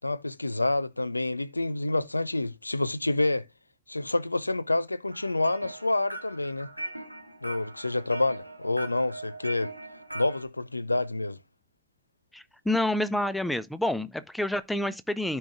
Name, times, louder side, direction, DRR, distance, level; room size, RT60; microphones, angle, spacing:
voice 1, 0.0-3.4 3.9-6.7 7.4-9.7 10.1-11.4, left 2 dB, 85° left, 0.4 m, -28 dB
sound 1, 5.1-10.4, right 1 dB, 90° right, 1.0 m, -40 dB
voice 2, 12.3-15.4, left 1 dB, 5° left, 0.6 m, -28 dB
13.5 x 4.6 x 2.4 m
figure-of-eight pair, 90°, 0 cm